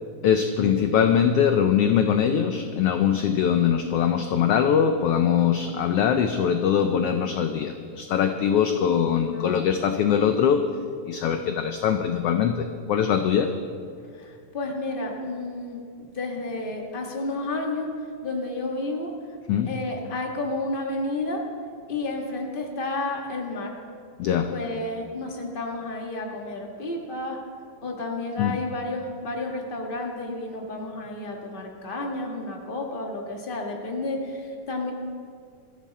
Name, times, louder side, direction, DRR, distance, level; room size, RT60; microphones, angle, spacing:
voice 1, 0.2-10.7 11.1-13.5 19.5-19.8 24.2-24.5 28.4-28.6, left 8 dB, 75° left, 7 dB, 1.4 m, -22 dB
voice 2, 9.3-9.6 14.1-17.9 18.2-19.1 19.7-21.4 21.9-23.7 24.5-27.4 27.8-34.9, left 2 dB, 20° left, 1 dB, 1.5 m, -31 dB
21.5 x 14.5 x 4.2 m, 2.2 s
omnidirectional pair, 3.4 m